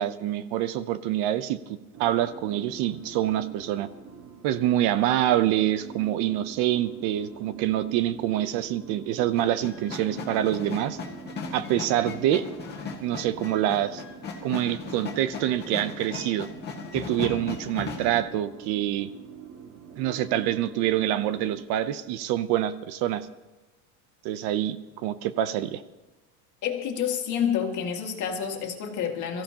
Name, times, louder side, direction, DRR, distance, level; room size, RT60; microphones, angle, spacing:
voice 1, 0.0-1.6 2.0-3.9 4.4-11.0 11.5-12.4 13.0-14.0 14.4-16.5 16.9-19.1 20.0-23.3 24.2-25.8, right 12 dB, 65° right, 14 dB, 0.8 m, -26 dB
sound 1, 1.9-21.6, right 6 dB, 30° right, 0.8 m, -44 dB
sound 2, 9.4-18.2, left 5 dB, 25° left, 1.8 m, -37 dB
voice 2, 26.6-29.4, left 8 dB, 40° left, 2 dB, 2.0 m, -28 dB
22.5 x 14.5 x 2.9 m, 1.1 s
cardioid pair, 160°, 43 cm